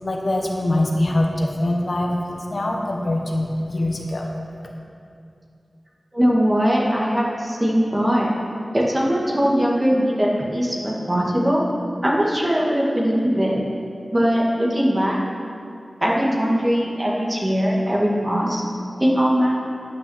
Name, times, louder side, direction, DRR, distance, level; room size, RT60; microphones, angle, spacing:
voice 1, 0.0-4.3, left 1 dB, 60° left, 0 dB, 1.3 m, -23 dB
voice 2, 6.1-8.3 8.7-11.6 12.0-13.6 14.1-15.2 16.0-18.6 19.0-19.6, equal, 25° right, -3 dB, 1.9 m, -20 dB
10.0 x 6.0 x 7.2 m, 2.5 s
wide cardioid pair, 80°, 0 cm